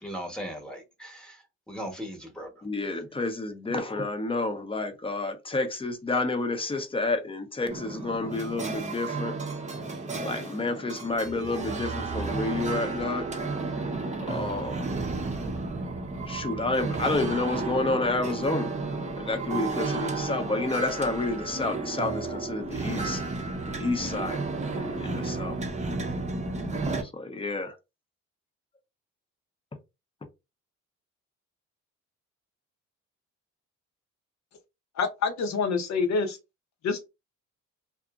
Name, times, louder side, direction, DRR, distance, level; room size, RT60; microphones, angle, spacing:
voice 1, 0.0-1.4 1.7-2.5, equal, 5° left, 1.0 m, -38 dB
voice 2, 2.6-9.3 10.2-13.3 14.2-14.9 16.3-18.7 19.2-23.2 23.7-24.4 24.8-25.6 27.0-27.7, left 2 dB, 20° left, 0.6 m, -30 dB
sound 1, 7.7-27.0, right 3 dB, 25° right, 0.6 m, -32 dB
voice 3, 35.0-36.4 36.8-37.0, left 4 dB, 65° left, 0.8 m, -26 dB
2.7 x 2.5 x 2.4 m
cardioid pair, 90°, 30 cm